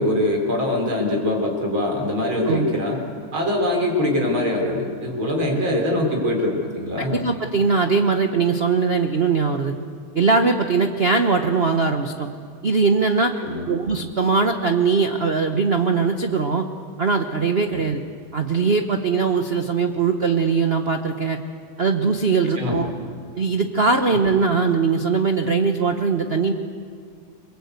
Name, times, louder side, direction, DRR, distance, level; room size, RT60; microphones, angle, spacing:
voice 1, 0.0-3.0 3.3-7.2 13.4-13.7 17.7-17.8 22.6-22.9, left 1 dB, 70° right, 1 dB, 5.2 m, -23 dB
voice 2, 2.4-2.8 7.0-9.7 10.1-12.3 12.6-13.3 13.7-16.7 17.0-18.0 18.3-21.4 21.8-22.9 23.4-26.5, right 4 dB, 40° right, 5 dB, 0.9 m, -20 dB
29.0 x 23.0 x 8.3 m, 2.2 s
omnidirectional pair, 2.4 m